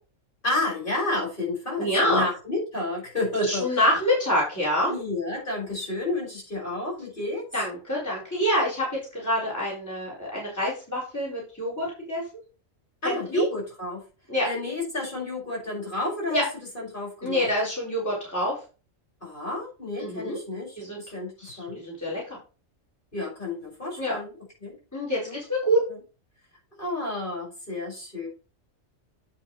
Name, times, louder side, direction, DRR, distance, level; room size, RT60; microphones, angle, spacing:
voice 1, 0.4-3.8 4.9-7.5 13.0-14.0 14.4-16.5 16.7-17.5 19.2-21.8 23.1-24.3 24.6-24.8 25.2-25.4 25.9-26.0 26.8-28.3, left 2 dB, 40° left, -3 dB, 5.8 m, -31 dB
voice 2, 1.8-2.2 3.5-5.0 7.5-12.2 13.0-13.5 14.3-14.5 16.3-16.4 17.2-18.5 20.0-20.4 20.8-21.0 21.4-21.6 21.8-22.4 24.0-24.2 24.9-25.8, equal, 15° left, -5 dB, 4.2 m, -26 dB
8.8 x 8.3 x 3.2 m, 0.33 s
omnidirectional pair, 1.3 m